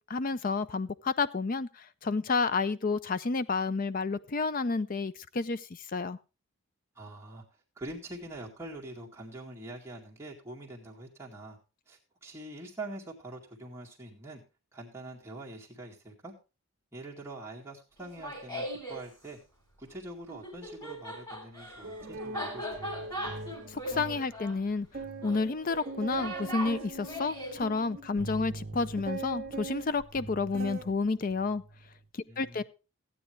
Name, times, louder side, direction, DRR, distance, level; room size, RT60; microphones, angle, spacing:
voice 1, 0.1-6.2 23.7-24.9 25.2-31.6 32.1-32.6, left 4 dB, 40° left, 16 dB, 0.5 m, -30 dB
voice 2, 7.0-7.4 7.8-11.6 11.9-14.4 14.7-16.3 16.9-19.4 19.8-22.9 32.3-32.6, right 2 dB, 10° right, -3 dB, 2.0 m, -44 dB
Laughter, 18.0-19.0 20.3-27.6, equal, 20° left, 3.5 m, -39 dB
sound 1, 21.8-24.2 24.6-24.7 24.9-30.9 31.3-31.7, right 3 dB, 40° right, 0.9 m, -41 dB
14.5 x 9.1 x 3.2 m, 0.30 s
head